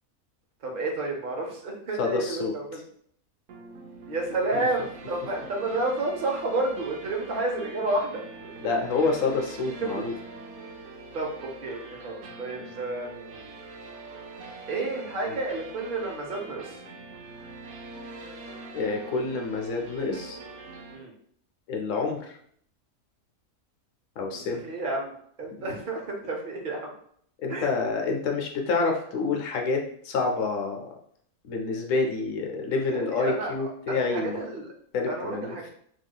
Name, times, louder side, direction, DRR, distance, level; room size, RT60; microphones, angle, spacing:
voice 1, 0.6-2.8 4.1-8.2 9.0-9.1 11.1-13.5 14.7-16.8 20.9-21.1 24.3-25.1 25.4-26.9 27.5-27.7 32.7-33.5 33.9-34.7 35.1-35.7, right 2 dB, 45° right, 0 dB, 0.8 m, -31 dB
voice 2, 2.0-2.5 8.6-10.1 15.3-15.4 18.7-20.4 21.7-22.4 24.2-24.6 27.4-30.8 31.4-34.4 34.9-35.6, left 4 dB, 70° left, 2 dB, 1.0 m, -28 dB
sound 1, 3.5-21.0, right 3 dB, 85° right, 1.1 m, -43 dB
3.6 x 3.1 x 2.2 m, 0.64 s
omnidirectional pair, 1.5 m